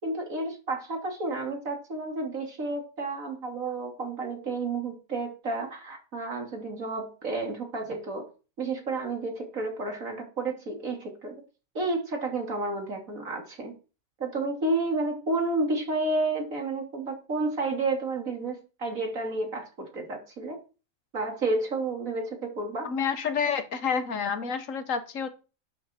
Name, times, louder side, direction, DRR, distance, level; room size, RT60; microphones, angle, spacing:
voice 1, 0.0-8.3 8.6-11.4 11.7-13.7 14.2-20.6 21.1-22.9, right 2 dB, 70° right, 3.2 m, -31 dB
voice 2, 22.8-25.3, left 6 dB, 65° left, 1.5 m, -29 dB
12.0 x 8.5 x 4.4 m
omnidirectional pair, 1.5 m